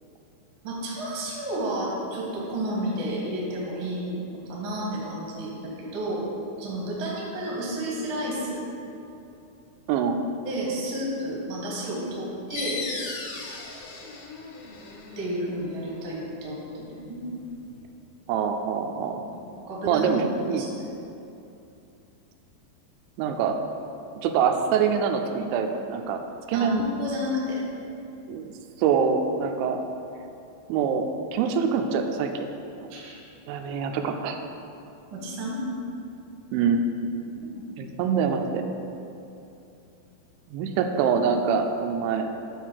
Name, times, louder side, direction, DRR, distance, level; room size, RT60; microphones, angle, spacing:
voice 1, 0.6-6.2 6.6-8.6 10.4-12.8 15.1-17.2 19.3-19.4 19.7-20.1 20.6-20.7 26.5-27.6 32.9-33.1 35.1-35.6, equal, 55° right, -5 dB, 1.4 m, -31 dB
voice 2, 9.9-10.2 18.3-19.2 19.9-20.8 23.2-23.6 24.2-26.2 26.5-26.8 28.3-28.5 28.8-29.8 30.7-32.5 33.5-34.4 36.5-36.9 37.8-38.7 40.5-42.3, right 6 dB, 85° right, 5 dB, 2.9 m, -25 dB
sound 1, 12.5-17.8, left 4 dB, 80° left, 2.8 m, -38 dB
10.0 x 3.6 x 6.3 m, 2.7 s
omnidirectional pair, 5.2 m